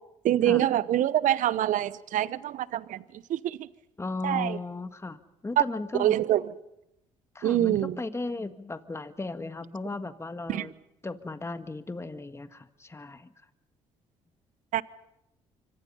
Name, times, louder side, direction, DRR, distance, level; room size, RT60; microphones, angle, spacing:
voice 1, 0.2-3.0 3.3-3.7 4.2-4.6 5.6-5.7 6.0-6.4 7.4-7.9 10.5-10.7 14.7-14.8, right 12 dB, 65° right, 1.0 m, -25 dB
voice 2, 4.0-5.2 5.4-6.2 7.4-10.7 11.0-13.3, left 3 dB, 20° left, 1.7 m, -36 dB
26.0 x 25.0 x 5.6 m
hypercardioid pair, 55°, 14 cm